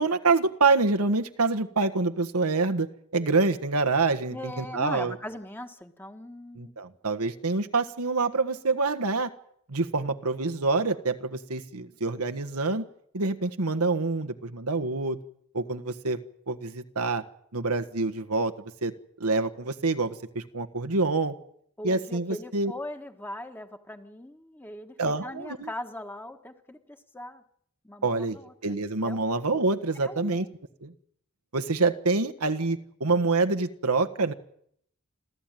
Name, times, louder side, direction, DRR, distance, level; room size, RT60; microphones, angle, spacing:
voice 1, 0.0-2.9 3.1-5.1 6.5-9.3 9.7-12.8 13.1-15.2 15.5-16.2 16.5-17.2 17.5-18.5 18.8-18.9 19.2-21.3 21.8-22.7 25.0-25.7 28.0-28.4 28.6-30.5 30.8-30.9 31.5-34.3, right 3 dB, 85° right, 8 dB, 1.6 m, -26 dB
voice 2, 4.3-6.7 21.8-27.4 27.8-28.7 29.0-29.2 30.0-30.5, left 1 dB, 10° left, 6 dB, 1.6 m, -40 dB
29.5 x 13.5 x 9.3 m, 0.69 s
head